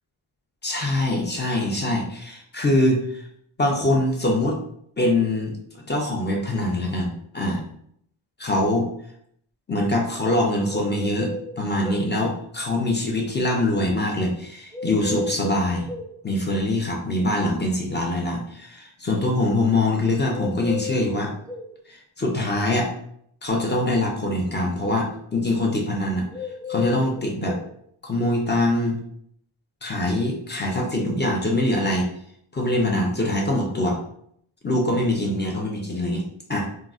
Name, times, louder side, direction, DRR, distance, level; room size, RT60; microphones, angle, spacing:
voice 1, 0.6-3.2 3.6-4.6 5.0-7.6 8.4-8.9 9.7-11.3 11.6-15.9 16.2-21.3 21.9-22.9 23.4-26.3 26.7-27.6 28.0-29.0 29.8-32.1 32.5-34.0 34.6-36.2 36.5-36.6, left 1 dB, 25° left, -1 dB, 0.3 m, -23 dB
sound 1, 10.7-12.1 14.7-16.1 20.3-21.7 26.3-27.7, left 3 dB, 5° left, 0.8 m, -33 dB
3.6 x 2.0 x 2.3 m, 0.69 s
wide cardioid pair, 150°, 50 cm